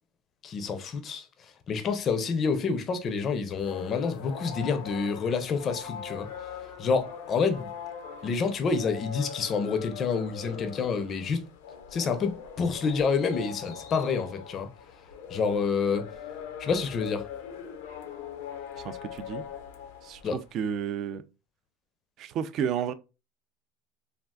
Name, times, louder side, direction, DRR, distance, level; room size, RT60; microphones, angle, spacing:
voice 1, 0.4-1.2 1.7-6.3 6.8-7.7 8.2-11.4 11.9-14.7 15.3-16.1 16.6-17.2 20.2-20.4, left 5 dB, 35° left, 0.5 m, -28 dB
sound 1, 3.5-20.5, left 8 dB, 85° left, 0.5 m, -41 dB
voice 2, 18.8-19.4 20.0-21.2 22.2-22.9, right 8 dB, 45° right, 0.3 m, -31 dB
3.4 x 2.3 x 2.3 m
supercardioid pair, 140°, 0 cm